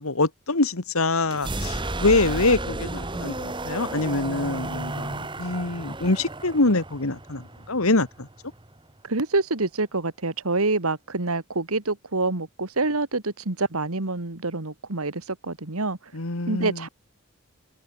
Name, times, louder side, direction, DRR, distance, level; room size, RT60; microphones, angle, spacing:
voice 1, 0.0-8.3 16.1-16.9, left 2 dB, 80° left, 2.0 m, -25 dB
sound 1, 1.3-9.0, right 2 dB, 20° right, 2.0 m, -33 dB
voice 2, 9.1-16.0 16.5-16.9, right 3 dB, 85° right, 2.1 m, -26 dB
head